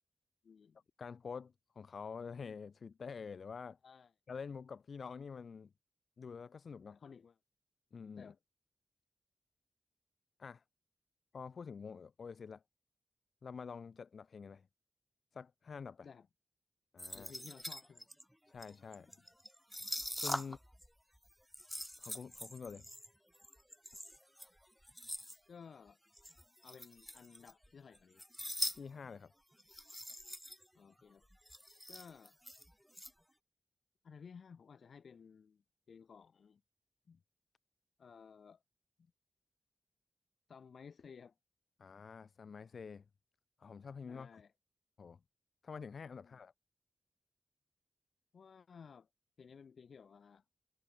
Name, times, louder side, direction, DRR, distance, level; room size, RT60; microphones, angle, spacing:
voice 1, 0.4-0.8 3.8-4.1 6.9-7.4 8.2-8.4 16.0-16.3 17.1-18.1 25.5-26.0 26.6-28.2 30.7-31.2 31.9-32.3 34.0-36.6 38.0-38.6 40.5-41.3 44.1-44.5 46.2-46.4 48.3-49.1 49.4-50.4, left 6 dB, 85° left, 6.9 m, -56 dB
voice 2, 1.0-3.8 4.3-5.7 6.2-7.0 7.9-8.3 10.4-10.6 11.3-12.6 13.4-14.7 15.3-16.1 16.9-17.3 18.5-19.1 20.2-20.6 22.0-22.8 28.7-29.3 37.1-37.2 41.8-43.0 43.6-44.4 45.0-45.2 45.6-46.5, left 5 dB, 70° left, 7.2 m, -47 dB
sound 1, 17.0-20.9 21.1-25.4 26.1-27.7 27.9-28.8 29.0-29.2 29.6-30.7 31.0-31.1 31.2-33.1, equal, ahead, 2.9 m, -44 dB
wide cardioid pair, 150°, 0 cm